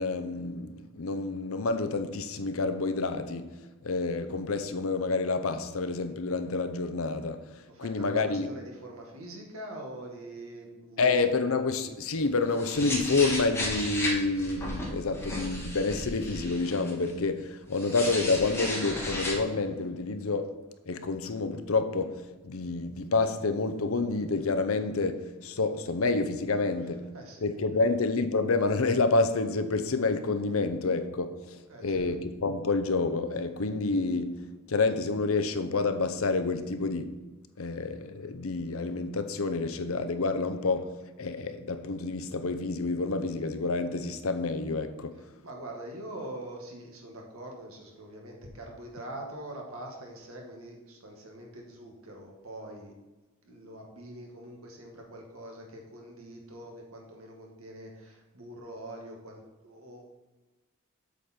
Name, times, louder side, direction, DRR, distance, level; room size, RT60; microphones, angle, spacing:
voice 1, 0.0-3.5 3.8-7.4 7.8-8.5 11.0-20.6 20.9-22.1 22.4-27.1 27.4-34.4 34.7-37.1 37.6-45.1, left 3 dB, 75° left, 0.7 m, -28 dB
voice 2, 7.7-11.3 27.1-27.5 31.7-32.1 45.4-52.9 53.4-60.0, right 1 dB, 85° right, 2.0 m, -44 dB
sound 1, 12.1-17.1 17.7-19.3, left 1 dB, 15° left, 1.7 m, -34 dB
8.2 x 6.7 x 4.4 m
head